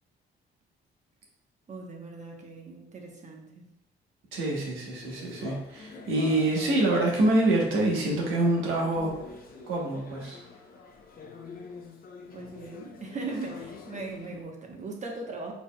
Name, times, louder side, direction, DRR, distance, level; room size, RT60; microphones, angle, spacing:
voice 1, 1.7-3.7 12.3-15.5, right 3 dB, 35° right, 1 dB, 1.0 m, -39 dB
voice 2, 4.3-9.1 9.7-10.4, right 2 dB, 85° right, -1 dB, 1.2 m, -26 dB
sound 1, 4.9-14.4, left 4 dB, 45° left, 0.7 m, -46 dB
4.6 x 4.1 x 2.3 m, 0.81 s
cardioid pair, 90°, 20 cm